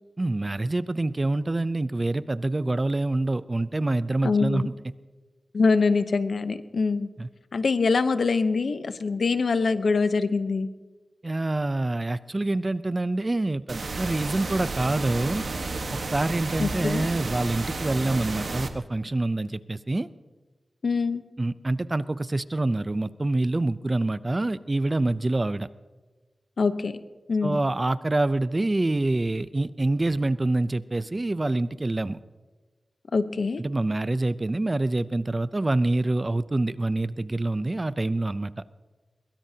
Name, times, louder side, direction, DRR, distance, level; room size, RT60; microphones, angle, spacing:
voice 1, 0.2-4.7 7.2-7.3 11.2-15.4 15.9-20.1 21.4-25.7 27.4-32.2 33.6-38.5, right 2 dB, 30° right, 15 dB, 0.5 m, -26 dB
voice 2, 4.2-4.7 5.5-7.1 7.5-10.7 16.6-17.1 20.8-21.2 26.6-27.0 27.3-27.6 33.1-33.6, left 4 dB, 75° left, 11 dB, 0.8 m, -24 dB
sound 1, 13.7-18.7, right 3 dB, 70° right, 1.3 m, -32 dB
22.5 x 21.5 x 2.8 m, 1.3 s
wide cardioid pair, 90°, 0 cm